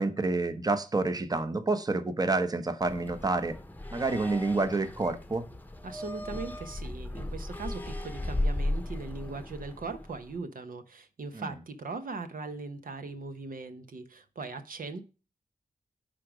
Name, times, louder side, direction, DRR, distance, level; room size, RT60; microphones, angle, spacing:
voice 1, 0.0-3.6 3.9-5.5 11.3-11.5, right 3 dB, 25° right, 0.9 m, -28 dB
sound 1, 2.8-10.4, left 1 dB, 10° left, 0.8 m, -36 dB
voice 2, 5.8-15.0, right 3 dB, 70° right, 0.9 m, -39 dB
9.7 x 3.8 x 5.0 m
cardioid pair, 65°, 15 cm